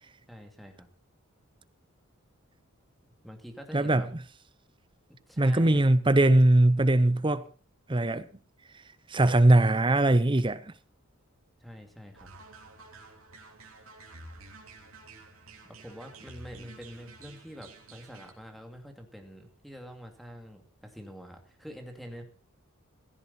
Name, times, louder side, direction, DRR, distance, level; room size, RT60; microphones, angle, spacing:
voice 1, 0.3-0.9 3.2-4.1 5.3-6.0 11.6-12.3 15.6-22.2, equal, ahead, 2.5 m, -46 dB
voice 2, 3.7-4.0 5.4-7.4 7.9-8.3 9.1-10.7, right 1 dB, 20° right, 0.7 m, -21 dB
sound 1, 12.1-18.3, right 2 dB, 70° right, 3.4 m, -50 dB
16.5 x 14.0 x 4.3 m
head